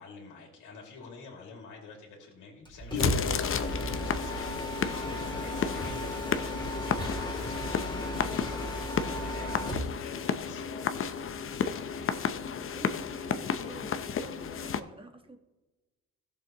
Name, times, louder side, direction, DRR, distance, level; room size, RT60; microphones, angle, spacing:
voice 1, 0.0-4.4 4.9-9.7 10.0-11.2 11.6-12.2, left 4 dB, 80° left, 0 dB, 2.5 m, -49 dB
Mechanisms, 2.7-9.9, equal, 15° left, 2.5 m, -35 dB
sound 1, 2.9-14.8, left 7 dB, 45° left, 0.7 m, -32 dB
voice 2, 5.0-5.4 11.9-12.1 12.6-15.4, right 2 dB, 15° right, 4 dB, 1.5 m, -50 dB
15.5 x 7.0 x 3.0 m, 1.1 s
cardioid pair, 90°, 30 cm